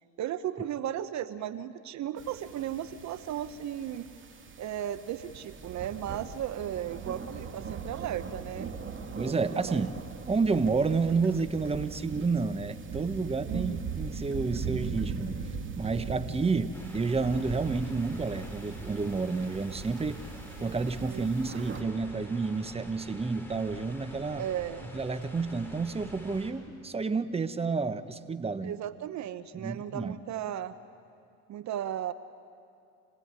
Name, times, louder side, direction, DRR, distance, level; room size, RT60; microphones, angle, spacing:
voice 1, 0.2-4.1 4.6-8.7 9.5-9.9 13.5-13.8 21.0-21.3 24.4-24.9 28.6-30.7 31.5-32.1, right 11 dB, 60° right, 13 dB, 1.0 m, -35 dB
sound 1, 2.2-21.8, right 5 dB, 35° right, 2.8 m, -40 dB
voice 2, 9.2-9.9 10.3-15.4 15.8-20.2 20.6-24.5 24.9-28.7 29.6-30.2, right 4 dB, 20° right, 11 dB, 1.2 m, -30 dB
sound 2, 16.7-26.5, left 1 dB, 5° left, 5.3 m, -47 dB
27.5 x 18.0 x 9.7 m, 2.5 s
supercardioid pair, 80°, 33 cm